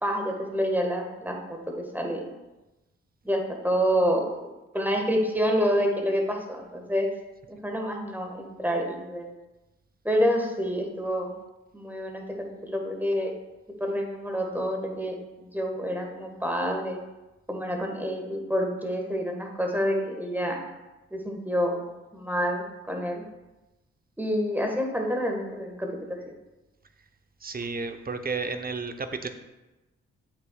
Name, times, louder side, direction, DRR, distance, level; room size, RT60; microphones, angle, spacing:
voice 1, 0.0-2.2 3.2-4.3 4.7-7.1 7.5-9.3 10.0-11.3 11.7-13.3 13.8-17.0 17.5-20.6 21.1-21.8 22.1-23.2 24.2-26.2, equal, 5° right, 2 dB, 1.6 m, -28 dB
voice 2, 27.4-29.3, right 4 dB, 25° right, 8 dB, 0.8 m, -32 dB
7.8 x 6.0 x 2.4 m, 1.0 s
hypercardioid pair, 40°, 34 cm